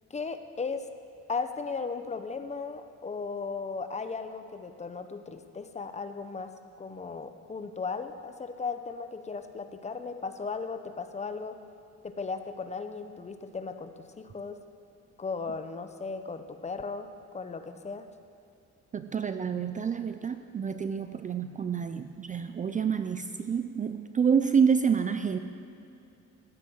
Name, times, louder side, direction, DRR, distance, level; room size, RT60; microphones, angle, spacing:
voice 1, 0.1-0.9 1.3-6.5 6.8-11.6 12.0-14.6 15.2-18.1, left 4 dB, 25° left, 8 dB, 0.7 m, -36 dB
voice 2, 18.9-25.4, right 6 dB, 25° right, 9 dB, 0.4 m, -28 dB
15.5 x 9.7 x 7.8 m, 2.6 s
cardioid pair, 165°, 29 cm